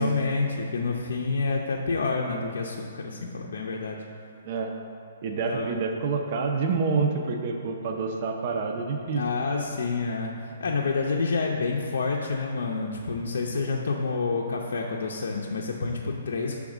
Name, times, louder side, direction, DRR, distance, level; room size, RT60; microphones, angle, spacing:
voice 1, 0.0-4.0 5.5-5.7 9.1-16.6, left 4 dB, 75° left, -1 dB, 0.5 m, -28 dB
voice 2, 5.2-9.2, right 4 dB, 40° right, 3 dB, 0.4 m, -27 dB
6.2 x 3.5 x 4.9 m, 2.5 s
hypercardioid pair, 165°, 0 cm